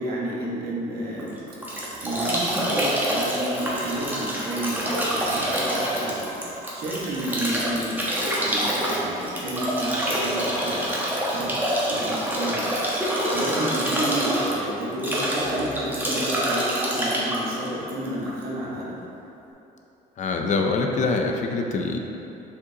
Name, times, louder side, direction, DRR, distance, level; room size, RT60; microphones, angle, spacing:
voice 1, 0.0-1.4 2.0-6.3 6.7-11.6 11.9-12.8 13.3-19.0, right 1 dB, 65° right, -5 dB, 1.4 m, -31 dB
Bathtub (filling or washing) / Drip / Trickle dribble, 1.2-18.4, right 1 dB, 10° right, 1.1 m, -26 dB
voice 2, 20.2-22.0, left 3 dB, 45° left, 2 dB, 0.6 m, -24 dB
6.8 x 5.1 x 2.8 m, 2.9 s
cardioid pair, 110°, 17 cm